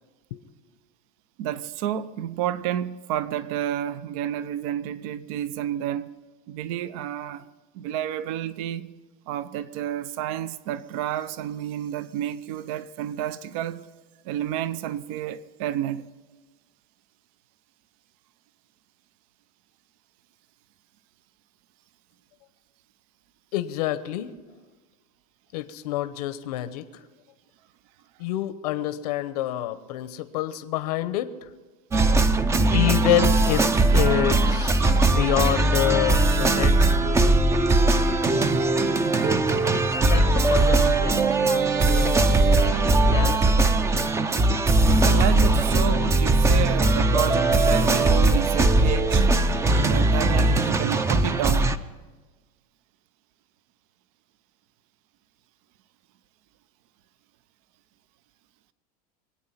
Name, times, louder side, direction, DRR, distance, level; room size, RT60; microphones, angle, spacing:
voice 1, 1.4-6.1 6.5-7.4 7.7-8.9 9.3-13.9 14.2-16.1 45.0-49.3 49.7-51.8, right 11 dB, 65° right, 0.8 m, -30 dB
voice 2, 23.5-24.3 25.5-27.0 28.2-31.5 32.7-38.4 39.7-43.7, left 13 dB, 80° left, 0.9 m, -28 dB
sound 1, 31.9-51.8, right 2 dB, 15° right, 0.6 m, -20 dB
24.0 x 8.8 x 5.7 m
supercardioid pair, 140°, 20 cm